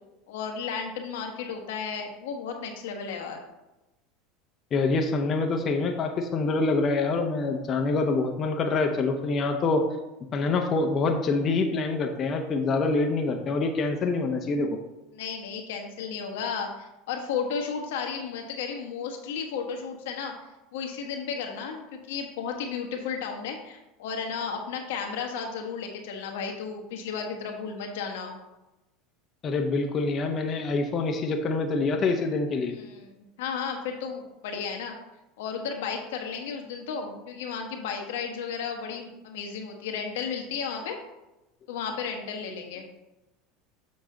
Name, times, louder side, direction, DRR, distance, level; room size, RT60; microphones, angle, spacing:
voice 1, 0.3-3.4 15.1-20.3 20.7-28.4 32.7-34.9 35.4-41.0 41.7-42.8, left 6 dB, 75° left, 3 dB, 1.1 m, -33 dB
voice 2, 4.7-9.9 10.3-14.8 29.4-32.8, left 3 dB, 40° left, 3 dB, 0.8 m, -26 dB
7.0 x 5.2 x 3.8 m, 1.0 s
hypercardioid pair, 85°, 0 cm